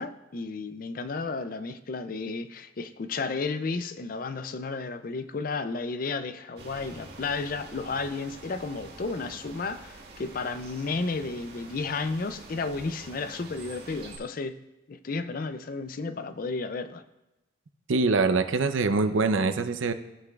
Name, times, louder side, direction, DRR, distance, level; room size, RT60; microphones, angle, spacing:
voice 1, 0.0-14.6 14.9-17.0, left 3 dB, 45° left, 0.4 m, -33 dB
sound 1, 6.6-14.2, right 2 dB, 50° right, 1.5 m, -46 dB
voice 2, 17.9-19.9, right 3 dB, 80° right, 0.6 m, -24 dB
16.0 x 5.9 x 2.4 m
head